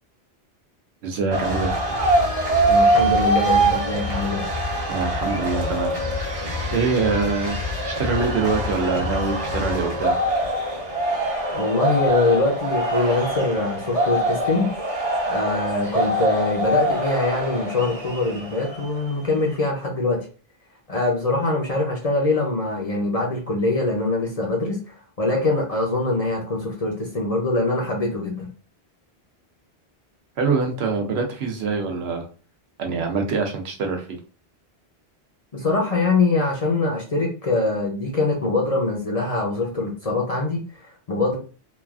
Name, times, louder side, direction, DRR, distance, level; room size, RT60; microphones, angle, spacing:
voice 1, 1.0-1.7 4.9-5.9 6.7-7.6 7.8-10.2 30.4-32.3 32.8-34.2, right 4 dB, 75° right, 3 dB, 0.9 m, -24 dB
sound 1, 1.3-19.1, right 1 dB, 35° right, 0.8 m, -24 dB
voice 2, 2.7-4.4 11.5-14.7 15.3-20.2 20.9-28.5 35.5-41.4, left 2 dB, 45° left, -1 dB, 0.6 m, -23 dB
3.1 x 2.3 x 2.3 m, 0.37 s
omnidirectional pair, 1.1 m